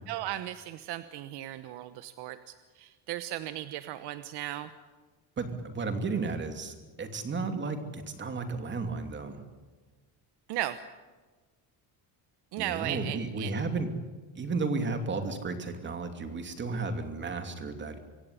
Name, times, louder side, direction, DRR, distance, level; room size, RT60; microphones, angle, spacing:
voice 1, 0.1-4.7 10.5-10.8 12.5-13.5, right 14 dB, 85° right, 11 dB, 1.2 m, -36 dB
voice 2, 5.4-9.4 12.6-13.9 14.3-18.0, right 3 dB, 30° right, 7 dB, 2.8 m, -33 dB
26.0 x 16.5 x 9.9 m, 1.3 s
cardioid pair, 155°, 39 cm